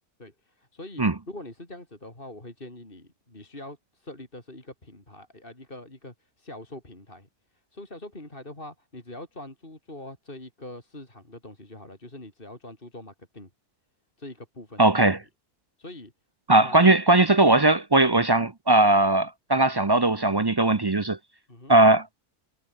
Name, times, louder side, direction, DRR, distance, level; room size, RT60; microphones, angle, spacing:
voice 1, 0.2-7.3 7.5-13.5 14.2-15.1 15.8-16.1 16.6-16.8 21.5-21.7, left 1 dB, 35° left, 4.8 m, -43 dB
voice 2, 14.8-15.2 16.5-21.2 21.7-22.1, right 2 dB, 30° right, 0.4 m, -19 dB
omnidirectional pair, 1.6 m